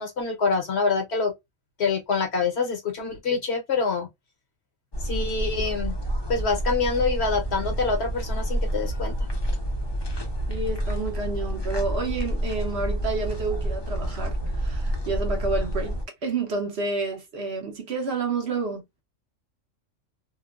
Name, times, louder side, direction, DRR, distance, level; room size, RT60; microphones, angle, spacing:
voice 1, 0.0-1.3 1.8-4.1 5.0-6.0 6.3-9.1, left 4 dB, 60° left, 1.0 m, -26 dB
sound 1, 4.9-16.0, right 1 dB, 25° left, 0.5 m, -28 dB
voice 2, 10.5-16.0 16.2-18.8, right 3 dB, 55° right, 1.0 m, -29 dB
2.9 x 2.2 x 2.2 m
omnidirectional pair, 1.4 m